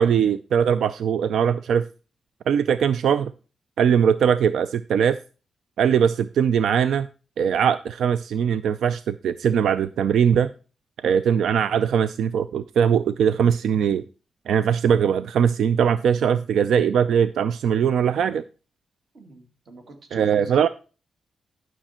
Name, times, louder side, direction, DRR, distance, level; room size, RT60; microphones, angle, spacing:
voice 1, 0.0-1.8 2.5-3.3 3.8-5.2 5.8-7.1 7.4-10.5 11.0-14.0 14.5-18.4 20.1-20.7, right 8 dB, 85° right, 13 dB, 0.4 m, -21 dB
voice 2, 19.1-20.5, right 1 dB, 45° right, 4 dB, 2.3 m, -44 dB
11.5 x 6.3 x 4.3 m, 0.34 s
wide cardioid pair, 180°, 0 cm